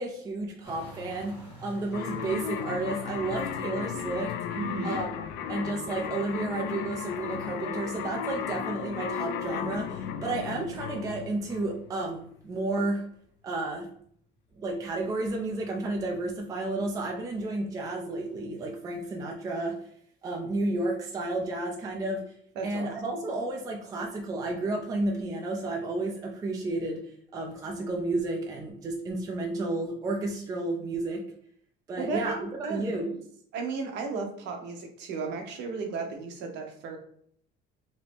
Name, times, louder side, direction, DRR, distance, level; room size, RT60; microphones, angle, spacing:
voice 1, 0.0-4.3 4.8-5.1 5.5-13.0 13.4-13.9 14.6-19.9 20.2-22.2 22.6-31.2 31.9-33.2, right 2 dB, 15° right, 1 dB, 0.4 m, -32 dB
sound 1, 0.6-12.6 12.9-17.8 18.4-18.5, left 1 dB, 30° left, 1.5 m, -52 dB
sound 2, 1.9-12.0, left 7 dB, 65° left, 0.4 m, -35 dB
voice 2, 4.6-5.0 22.6-23.2 32.0-32.3 32.6-33.0 33.5-37.0, right 4 dB, 60° right, 3 dB, 0.8 m, -34 dB
2.9 x 2.6 x 3.4 m, 0.62 s
cardioid pair, 165°, 20 cm